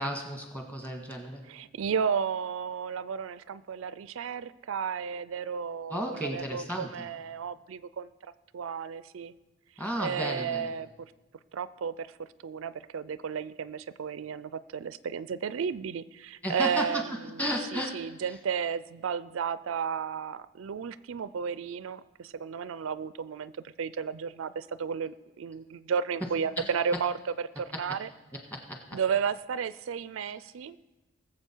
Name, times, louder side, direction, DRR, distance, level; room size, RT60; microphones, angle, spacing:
voice 1, 0.0-1.4 5.9-7.0 9.8-10.7 16.4-17.0 17.4-18.0 18.3-18.4 26.6-26.7 28.5-29.0, equal, 10° left, 2 dB, 1.6 m, -33 dB
voice 2, 1.5-8.1 8.5-9.3 10.0-11.1 11.5-12.1 12.4-17.0 17.3-17.4 17.7-27.2 27.6-28.1 28.9-30.8, right 6 dB, 85° right, 16 dB, 0.4 m, -33 dB
19.5 x 7.4 x 4.5 m, 1.1 s
head